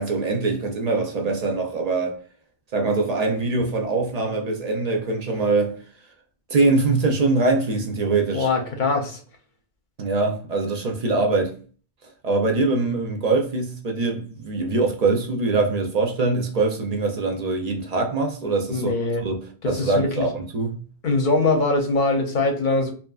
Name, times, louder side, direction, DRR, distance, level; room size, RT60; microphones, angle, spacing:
voice 1, 0.0-2.2 2.7-5.8 6.5-8.5 10.0-11.6 12.2-18.9 19.2-19.4 19.7-20.8, right 3 dB, 55° right, 0.4 m, -23 dB
voice 2, 8.3-9.2 18.7-19.2 19.6-20.3 21.0-22.9, left 3 dB, 55° left, 0.7 m, -22 dB
2.8 x 2.4 x 2.3 m
omnidirectional pair, 1.2 m